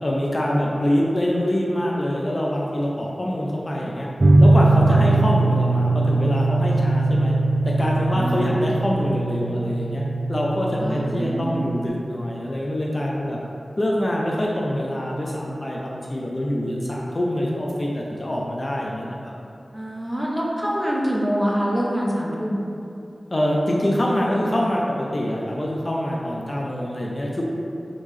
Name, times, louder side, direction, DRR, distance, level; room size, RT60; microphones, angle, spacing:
voice 1, 0.0-4.1 4.4-7.3 7.6-10.0 10.3-13.4 13.8-19.3 23.3-27.4, equal, 40° left, -3 dB, 0.5 m, -25 dB
sound 1, 4.2-11.9, right 2 dB, 65° right, 0.3 m, -20 dB
voice 2, 8.1-8.5 10.8-11.9 19.7-22.6, equal, 5° right, -4 dB, 0.7 m, -25 dB
3.7 x 3.7 x 3.2 m, 2.7 s
wide cardioid pair, 80°, 0 cm